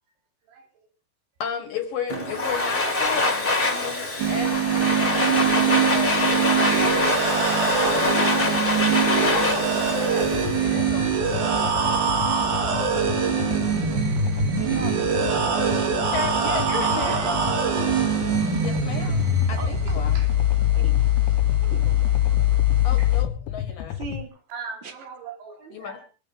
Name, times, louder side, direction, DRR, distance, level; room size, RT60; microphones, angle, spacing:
voice 1, 1.4-7.1 7.6-11.2 16.1-17.2 18.6-20.2 22.8-24.0 25.7-26.0, left 7 dB, 65° left, 2.5 m, -34 dB
Domestic sounds home sounds, 2.1-11.0, left 2 dB, 20° left, 1.6 m, -24 dB
sound 1, 4.2-23.2, right 1 dB, 50° right, 3.4 m, -23 dB
sound 2, 10.2-24.2, left 10 dB, 85° left, 3.2 m, -33 dB
voice 2, 14.6-15.9 17.1-17.4 19.6-19.7 20.7-21.0 21.6-22.1 24.0-24.3 24.8-24.9, right 4 dB, 30° right, 2.5 m, -35 dB
voice 3, 19.9-20.3 23.0-23.1 24.5-26.1, right 5 dB, 85° right, 5.3 m, -40 dB
25.0 x 13.0 x 3.5 m
omnidirectional pair, 5.2 m